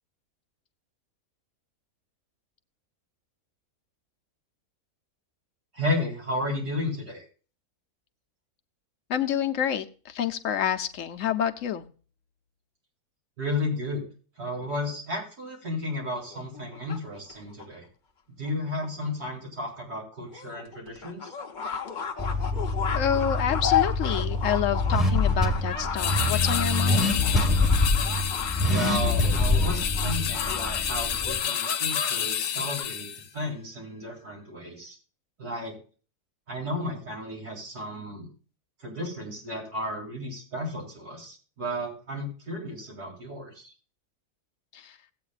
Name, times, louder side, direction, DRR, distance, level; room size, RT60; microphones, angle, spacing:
voice 1, 5.7-7.2 13.4-14.0 14.4-17.8 18.4-21.3 28.7-35.0 35.4-35.8 36.5-38.3 38.8-43.7, left 1 dB, 85° right, -3 dB, 4.4 m, -33 dB
voice 2, 9.1-11.8 22.9-27.1 44.7-45.0, left 9 dB, 60° left, 7 dB, 1.0 m, -28 dB
sound 1, 16.1-17.7 18.4-18.5 18.8-18.9 19.2-19.3 19.7-19.8 20.3-32.1 32.4-32.8, left 7 dB, 40° left, 0.8 m, -33 dB
Car / Accelerating revving vroom, 22.2-31.4, left 2 dB, ahead, 1.1 m, -26 dB
sound 2, 26.0-33.3, left 10 dB, 85° left, 1.2 m, -30 dB
16.5 x 8.6 x 2.4 m, 0.37 s
omnidirectional pair, 1.6 m